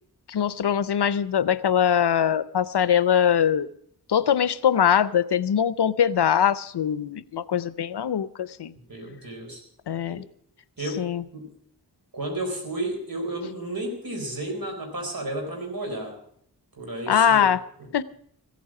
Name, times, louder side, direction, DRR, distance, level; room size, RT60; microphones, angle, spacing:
voice 1, 0.3-3.7 4.1-8.7 9.9-10.2 11.0-11.2 17.1-17.6 17.9-18.0, left 8 dB, 90° left, 16 dB, 0.7 m, -22 dB
voice 2, 8.9-9.6 10.1-10.2 10.8-11.0 11.3-11.5 12.1-16.2 16.7-17.5, right 1 dB, 60° right, 2 dB, 4.3 m, -32 dB
15.5 x 8.5 x 7.5 m, 0.66 s
wide cardioid pair, 80°, 39 cm